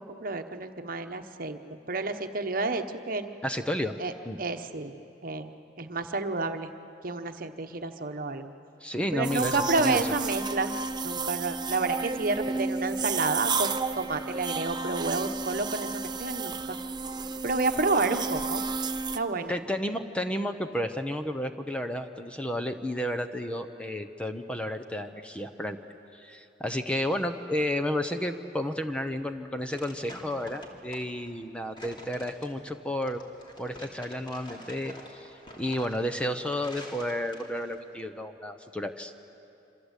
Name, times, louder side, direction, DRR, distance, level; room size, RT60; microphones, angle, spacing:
voice 1, 0.0-3.3 4.0-4.9 5.2-6.7 7.0-8.5 9.1-10.7 11.0-16.8 17.4-18.6 19.1-19.6, right 3 dB, 50° right, 7 dB, 1.2 m, -30 dB
voice 2, 3.4-3.9 4.2-4.4 8.8-10.1 19.5-25.8 26.1-33.2 33.6-35.3 35.6-39.1, left 1 dB, 5° left, 7 dB, 0.9 m, -32 dB
sound 1, 9.2-19.2, right 4 dB, 25° right, 0.8 m, -32 dB
sound 2, 29.2-37.8, left 1 dB, 25° left, 3.0 m, -47 dB
27.0 x 26.0 x 8.3 m, 2.8 s
head